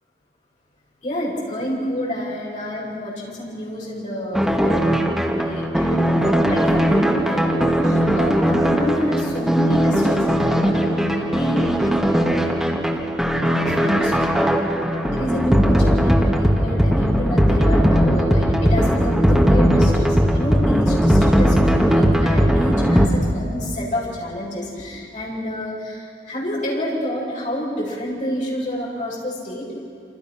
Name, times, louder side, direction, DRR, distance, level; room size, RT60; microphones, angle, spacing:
voice 1, 1.0-11.8 12.1-12.7 13.3-29.7, equal, 45° left, -4 dB, 8.0 m, -28 dB
sound 1, 4.3-23.1, equal, ahead, 1.8 m, -18 dB
28.0 x 27.5 x 6.1 m, 2.3 s
head